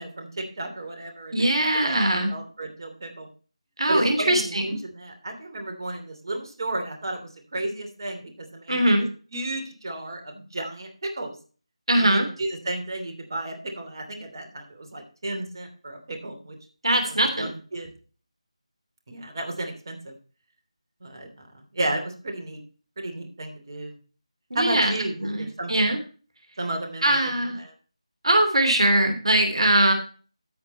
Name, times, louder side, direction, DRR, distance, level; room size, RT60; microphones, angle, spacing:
voice 1, 0.0-1.5 1.7-3.3 3.9-8.9 9.3-11.4 12.0-16.6 17.0-17.9 19.1-20.1 21.0-22.6 23.0-24.0 24.5-26.0 26.6-27.7, right 1 dB, 40° right, 4 dB, 2.9 m, -33 dB
voice 2, 1.3-2.3 3.8-4.6 8.7-9.1 11.9-12.3 16.8-17.5 24.5-24.9 25.2-26.0 27.0-27.6 28.2-29.9, right 1 dB, 60° right, 5 dB, 2.8 m, -21 dB
15.0 x 5.2 x 4.3 m, 0.37 s
figure-of-eight pair, 160°, 3 cm